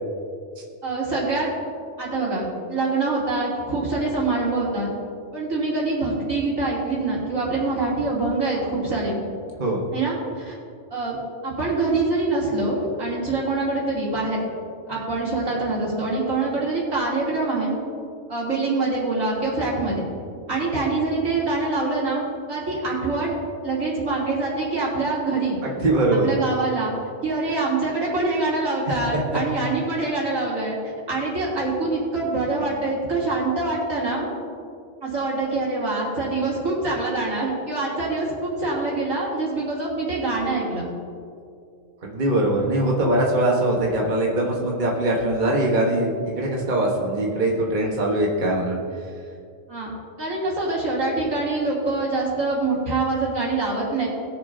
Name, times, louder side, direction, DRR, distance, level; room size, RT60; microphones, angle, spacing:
voice 1, 0.8-1.5 2.0-4.9 5.3-9.2 9.9-10.6 10.9-11.2 11.4-14.4 14.9-17.7 18.3-20.0 20.5-23.4 23.6-25.6 26.1-26.9 27.2-30.8 31.1-34.3 35.0-40.8 49.7-49.9 50.2-54.1, right 3 dB, 85° right, -7 dB, 3.5 m, -25 dB
voice 2, 25.6-26.3 29.1-29.4 32.6-32.7 42.0-48.8, right 1 dB, 40° right, -2 dB, 1.4 m, -22 dB
20.0 x 7.0 x 2.7 m, 2.4 s
omnidirectional pair, 1.3 m